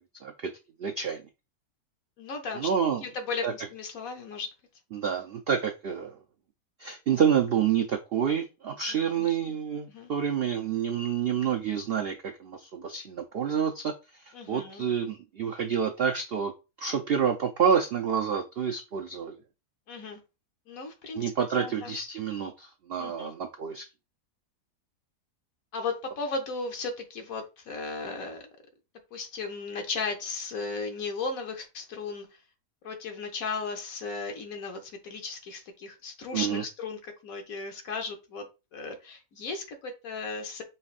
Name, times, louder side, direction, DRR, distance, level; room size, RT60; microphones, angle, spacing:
voice 1, 0.2-0.5 0.8-1.2 2.5-3.0 3.4-3.5 4.9-6.2 6.8-16.5 16.8-19.4 21.1-23.8 36.3-36.6, right 7 dB, 85° right, 4 dB, 0.5 m, -28 dB
voice 2, 2.2-2.7 3.0-4.5 9.2-9.6 9.9-10.1 14.3-14.9 19.9-20.2 20.7-21.2 21.5-22.0 23.0-23.3 25.7-28.4 29.1-32.3 32.8-38.5 38.7-40.6, left 4 dB, 65° left, 5 dB, 1.3 m, -36 dB
5.5 x 3.3 x 2.4 m, 0.28 s
omnidirectional pair, 1.7 m